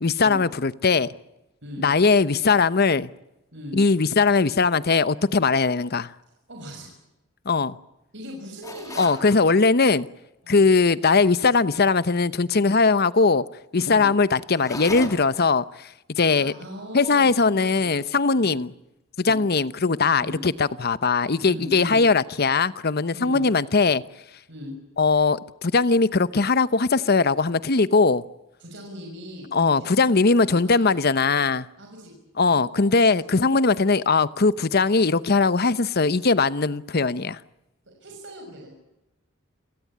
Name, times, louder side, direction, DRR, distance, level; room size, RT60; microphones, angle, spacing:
voice 1, 0.0-1.1 1.8-3.1 3.7-6.1 7.5-7.8 9.0-10.1 10.5-13.4 13.7-16.5 16.9-18.7 19.2-24.0 25.0-28.2 29.5-31.7 32.4-37.4, left 4 dB, 50° left, 0.9 m, -20 dB
voice 2, 6.5-6.9 8.1-9.6 10.4-10.7 13.8-14.1 16.4-18.1 18.3-18.6 19.2-19.4 20.2-20.4 21.5-22.0 23.1-23.4 24.5-24.7 28.6-30.9 31.8-32.2 32.5-33.4 37.9-38.7, left 1 dB, 65° right, 6.3 m, -40 dB
sound 1, 8.6-9.3 14.5-15.5, left 2 dB, 15° left, 2.4 m, -36 dB
29.0 x 17.5 x 8.7 m
head